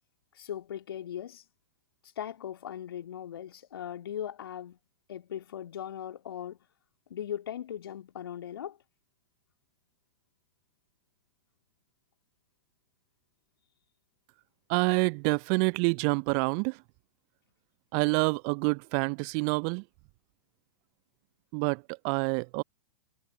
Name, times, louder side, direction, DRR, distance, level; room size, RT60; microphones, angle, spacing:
voice 1, 0.3-1.4 2.2-4.8 5.1-6.6 7.1-8.8, left 10 dB, 65° left, 2.2 m, -39 dB
voice 2, 14.7-16.8 17.9-19.8 21.5-22.6, right 40 dB or more, 35° right, 0.4 m, -27 dB
figure-of-eight pair, 100°, 13 cm